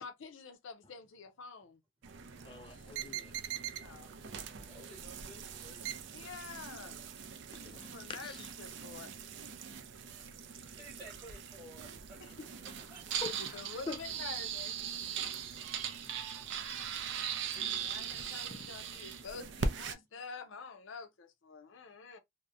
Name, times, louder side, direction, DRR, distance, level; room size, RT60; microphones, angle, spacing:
voice 1, 0.0-1.8 3.8-4.3 6.1-7.0 7.7-8.3 8.6-9.1 12.2-12.5 13.1-14.8 17.8-22.2, left 5 dB, 75° left, 0.5 m, -48 dB
sound 1, 2.0-20.0, right 7 dB, 65° right, 0.4 m, -40 dB
voice 2, 2.4-3.7 7.5-8.5 10.2-10.4 13.2-14.0 17.7-17.8 18.5-18.7, left 4 dB, 25° left, 0.4 m, -46 dB
voice 3, 4.6-6.3 10.3-13.2 13.5-13.8, right 1 dB, 10° right, 1.1 m, -55 dB
2.7 x 2.0 x 2.4 m
head